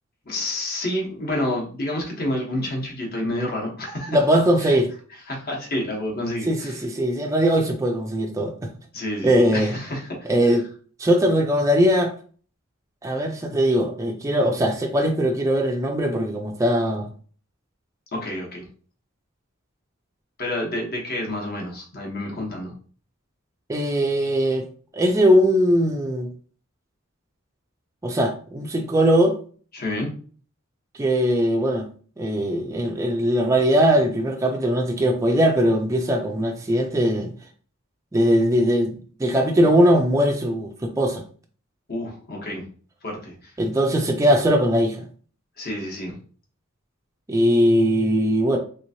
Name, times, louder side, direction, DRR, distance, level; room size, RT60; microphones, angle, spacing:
voice 1, 0.3-4.2 4.6-4.8 5.3-6.8 8.9-10.6 18.1-18.7 20.4-22.7 29.7-30.1 41.9-42.6 43.0-43.5 45.6-46.1, left 1 dB, 50° left, 1.1 m, -29 dB
voice 2, 4.1-4.9 6.5-8.7 9.2-9.7 10.3-10.7 11.0-12.1 13.0-17.1 23.7-24.6 24.9-26.3 28.0-29.4 31.0-31.9 32.2-37.3 38.1-41.2 43.6-45.0 47.3-48.6, equal, 15° right, 0.4 m, -20 dB
3.3 x 3.0 x 2.7 m
head